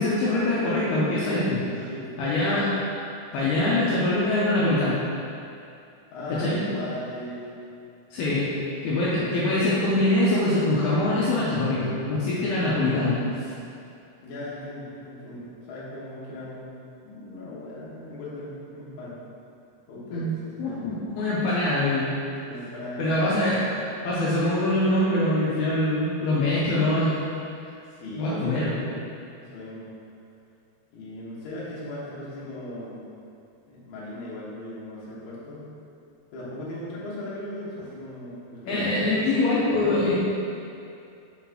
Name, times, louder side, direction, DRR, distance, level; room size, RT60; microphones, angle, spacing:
voice 1, 0.0-1.9 2.2-2.7 3.3-5.0 6.4-6.6 8.1-8.5 8.8-13.2 20.1-20.3 20.6-22.1 23.0-23.6 24.0-27.1 28.2-28.8 38.7-40.2, left 1 dB, 80° left, -8 dB, 2.5 m, -23 dB
voice 2, 6.1-7.7 9.1-9.3 14.2-19.2 19.9-20.9 22.4-23.2 27.9-28.6 29.4-29.9 30.9-33.1 33.7-35.7 36.3-39.1, left 1 dB, 60° left, -9 dB, 2.2 m, -38 dB
5.9 x 5.7 x 2.9 m, 2.6 s
omnidirectional pair, 4.9 m